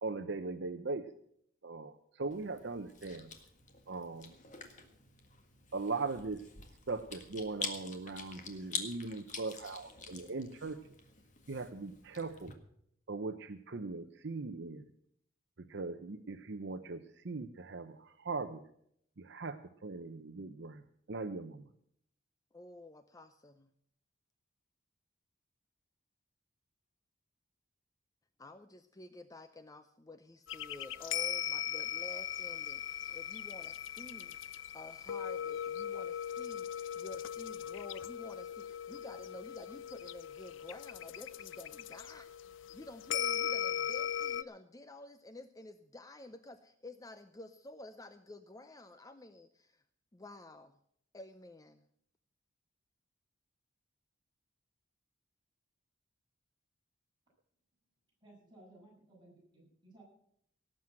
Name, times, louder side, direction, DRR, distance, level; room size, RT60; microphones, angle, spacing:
voice 1, 0.0-1.0 1.6-3.3 3.9-4.3 5.7-6.4 6.9-10.8 11.5-12.5 13.1-14.9 15.7-18.6 19.2-19.6 19.8-20.8 21.1-21.7, right 3 dB, 60° right, 9 dB, 0.7 m, -39 dB
Chewing mastication, 2.3-12.5, left 5 dB, 40° left, 1.8 m, -46 dB
voice 2, 22.5-23.7 28.4-49.8 50.1-50.8 51.1-51.8, left 2 dB, 20° left, 10 dB, 0.6 m, -51 dB
sound 1, 30.5-44.4, left 9 dB, 65° left, 0.5 m, -39 dB
voice 3, 58.2-60.0, right 2 dB, 20° right, -5 dB, 7.9 m, -59 dB
18.0 x 7.6 x 7.6 m, 0.69 s
head